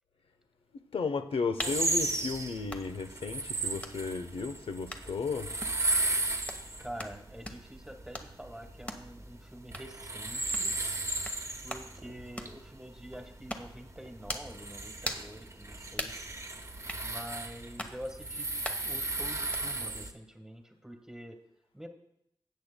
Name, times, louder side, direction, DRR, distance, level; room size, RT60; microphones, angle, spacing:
voice 1, 0.9-5.5, left 4 dB, 85° left, 0.8 m, -34 dB
sound 1, 1.6-1.8 2.7-2.9 3.8-4.0 4.9-5.1 5.6-5.8 6.5-6.6 7.0-7.2 7.5-7.6 8.1-8.3 8.9-9.1 9.7-9.9 10.5-10.7 11.2-11.4 11.7-11.9 12.4-12.6 13.5-13.7 14.3-14.5 15.0-15.3 16.0-16.2 16.9-17.0 17.8-18.0 18.6-18.9 19.5-19.6, left 1 dB, 15° left, 1.0 m, -39 dB
sound 2, 1.6-20.1, right 2 dB, 30° right, 1.0 m, -35 dB
voice 2, 6.8-10.7 11.6-16.1 17.0-18.5 18.8-21.4 21.7-21.9, equal, 5° right, 1.4 m, -46 dB
17.0 x 8.2 x 2.2 m
wide cardioid pair, 70°, 9 cm